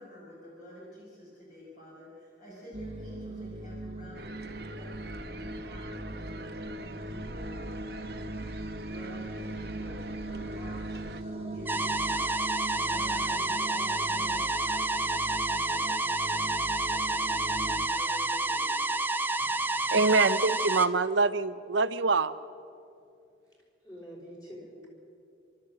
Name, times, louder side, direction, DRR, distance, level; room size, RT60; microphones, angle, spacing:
voice 1, 0.0-16.5 16.9-18.9, equal, 45° left, -6 dB, 5.8 m, -49 dB
sound 1, 2.7-17.9, right 1 dB, 30° right, 1.2 m, -40 dB
sound 2, 4.1-11.2, right 2 dB, 55° right, 1.1 m, -44 dB
sound 3, 11.7-20.9, right 2 dB, 10° right, 0.6 m, -29 dB
voice 2, 19.8-22.3, right 3 dB, 85° right, 13 dB, 0.8 m, -25 dB
voice 3, 23.4-24.9, equal, 20° left, -3 dB, 5.0 m, -47 dB
29.0 x 13.0 x 7.8 m, 2.6 s
head